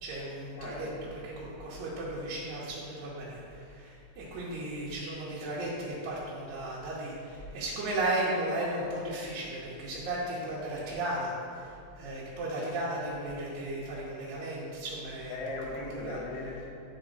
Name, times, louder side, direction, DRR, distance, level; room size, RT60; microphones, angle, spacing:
voice 1, 0.0-15.4 15.8-16.2, right 1 dB, 70° right, -9 dB, 2.5 m, -35 dB
voice 2, 0.6-0.9 15.3-16.7, left 2 dB, 75° left, -3 dB, 2.8 m, -38 dB
10.5 x 4.0 x 4.0 m, 2.6 s
omnidirectional pair, 4.5 m